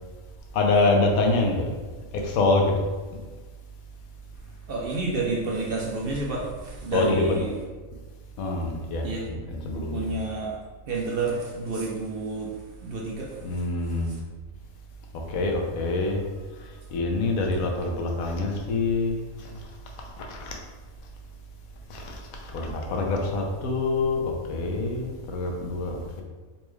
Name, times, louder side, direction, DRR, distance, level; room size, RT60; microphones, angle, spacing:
voice 1, 0.5-1.7 2.1-2.7 3.1-3.2 6.9-7.4 8.4-10.1 13.4-14.2 15.1-16.2 16.6-19.7 20.0-20.6 21.9-26.2, left 2 dB, 80° left, 1 dB, 1.1 m, -26 dB
voice 2, 4.4-7.5 9.0-9.2 9.7-10.6 10.9-13.6 14.0-14.2, right 3 dB, 60° right, -2 dB, 0.6 m, -30 dB
4.1 x 2.3 x 3.1 m, 1.3 s
omnidirectional pair, 1.5 m